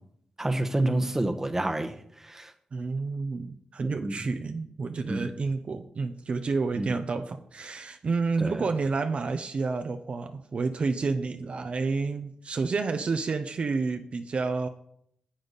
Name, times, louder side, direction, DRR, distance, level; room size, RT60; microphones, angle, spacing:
voice 1, 0.4-2.5 3.8-4.2 5.1-5.2 6.8-6.9 8.4-8.6, right 1 dB, 15° right, 7 dB, 1.1 m, -29 dB
voice 2, 2.7-14.7, right 4 dB, 50° right, 7 dB, 0.8 m, -30 dB
12.0 x 7.9 x 4.1 m, 0.68 s
cardioid pair, 95°, 3 cm